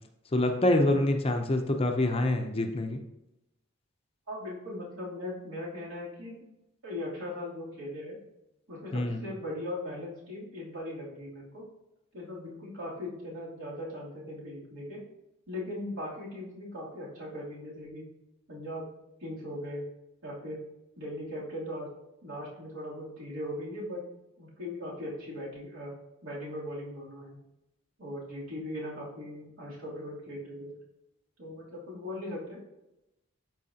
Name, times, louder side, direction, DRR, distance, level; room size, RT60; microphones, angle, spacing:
voice 1, 0.3-3.0 8.9-9.3, left 1 dB, 25° left, 5 dB, 0.6 m, -26 dB
voice 2, 4.3-6.4 6.8-8.2 8.7-11.6 12.1-15.0 15.5-18.1 18.5-18.9 19.2-19.8 20.2-20.6 21.0-21.9 22.2-24.0 24.4-25.9 26.2-27.4 28.0-30.7 31.4-32.6, left 1 dB, 70° right, -6 dB, 2.9 m, -39 dB
12.5 x 4.7 x 2.8 m, 0.91 s
head